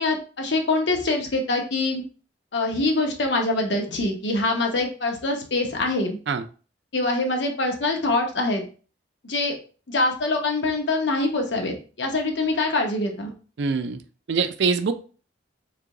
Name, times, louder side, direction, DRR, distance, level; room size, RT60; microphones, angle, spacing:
voice 1, 0.0-2.0 2.5-6.2 6.9-8.6 9.2-9.5 9.9-13.3, left 2 dB, 75° left, 2 dB, 0.9 m, -24 dB
voice 2, 13.6-14.0 14.3-14.9, right 5 dB, 70° right, 9 dB, 0.4 m, -23 dB
3.3 x 3.0 x 3.6 m, 0.38 s
head